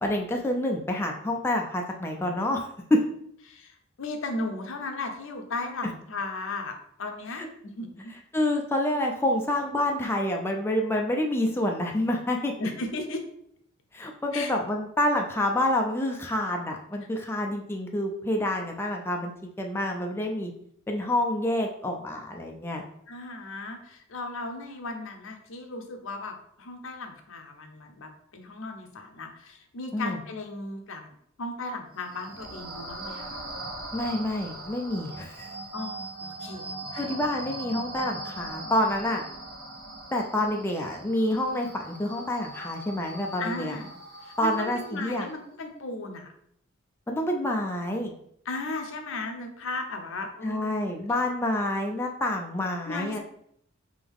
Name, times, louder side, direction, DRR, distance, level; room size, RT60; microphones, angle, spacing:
voice 1, 0.0-3.0 7.4-7.5 8.3-12.5 13.9-19.3 19.6-20.5 20.9-22.8 29.9-30.2 33.9-35.5 37.0-39.2 40.1-43.8 44.4-45.3 47.1-48.1 50.4-53.2, left 1 dB, 10° left, 1 dB, 0.4 m, -28 dB
voice 2, 3.5-8.1 12.6-13.2 14.3-14.5 23.1-31.1 31.4-33.4 35.7-37.0 43.4-43.9 44.2-46.3 48.4-50.9 52.8-53.2, left 2 dB, 70° left, 4 dB, 0.7 m, -36 dB
sound 1, 31.9-45.3, right 2 dB, 75° right, 1.5 m, -41 dB
3.6 x 3.4 x 3.5 m, 0.69 s
head